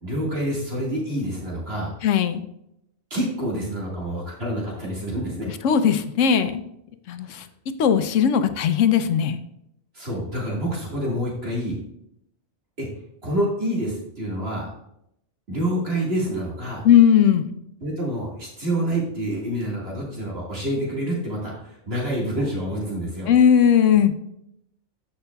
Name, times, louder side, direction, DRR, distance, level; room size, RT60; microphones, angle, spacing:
voice 1, 0.0-2.0 3.1-5.5 7.2-7.4 9.9-11.8 12.8-12.9 13.2-14.7 15.5-16.9 17.8-23.3, right 1 dB, 55° right, -4 dB, 2.1 m, -27 dB
voice 2, 2.0-2.4 5.6-6.6 7.1-7.5 7.8-9.4 16.8-17.5 23.3-24.1, left 8 dB, 85° left, 10 dB, 1.0 m, -18 dB
13.5 x 5.6 x 2.3 m, 0.78 s
omnidirectional pair, 1.2 m